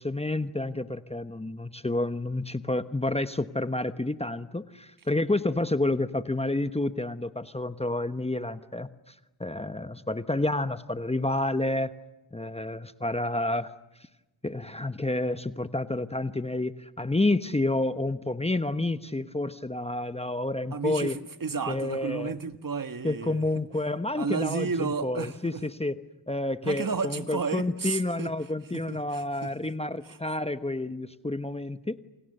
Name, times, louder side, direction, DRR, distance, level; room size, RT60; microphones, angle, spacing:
voice 1, 0.0-9.1 9.4-11.9 12.3-13.7 14.4-21.2 21.7-22.3 23.0-26.0 26.3-32.0, left 2 dB, 15° left, 11 dB, 1.0 m, -29 dB
voice 2, 20.7-23.4 24.2-25.6 26.6-28.3 28.7-29.7 30.0-30.2, right 5 dB, 45° right, 9 dB, 1.7 m, -32 dB
29.0 x 28.0 x 6.8 m, 1.1 s
cardioid pair, 60°, 48 cm